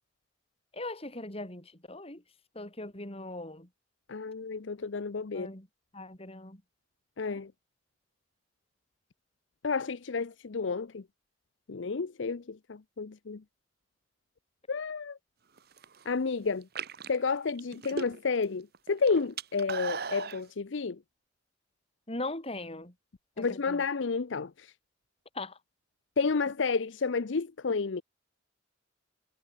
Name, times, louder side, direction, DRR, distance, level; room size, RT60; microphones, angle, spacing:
voice 1, 0.7-2.2 2.5-3.7 5.3-5.7 5.9-6.6 22.1-22.9 23.4-23.8 25.3-25.6, left 2 dB, 30° left, 4.4 m, -40 dB
voice 2, 4.1-5.5 7.2-7.5 9.6-11.0 11.7-13.4 14.7-15.2 16.1-16.7 17.1-21.0 23.4-24.7 26.2-28.0, left 4 dB, 75° left, 0.6 m, -31 dB
sound 1, 15.6-16.0 16.6-18.4 18.7-20.4, right 5 dB, 55° right, 1.4 m, -37 dB
head